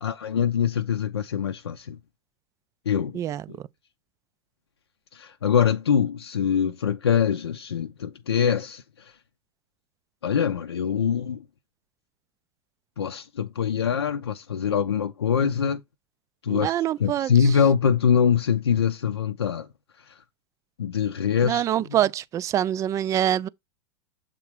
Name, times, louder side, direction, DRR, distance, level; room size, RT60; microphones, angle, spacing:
voice 1, 0.0-2.0 2.9-3.2 3.5-3.6 5.1-9.1 10.2-11.4 13.0-15.8 16.4-16.7 17.0-19.7 20.0-20.2 20.8-21.6 21.9-22.0, left 7 dB, 75° left, 0.6 m, -24 dB
voice 2, 16.5-17.3 21.4-23.5, right 11 dB, 25° right, 0.3 m, -25 dB
7.4 x 3.8 x 4.4 m
figure-of-eight pair, 95°, 14 cm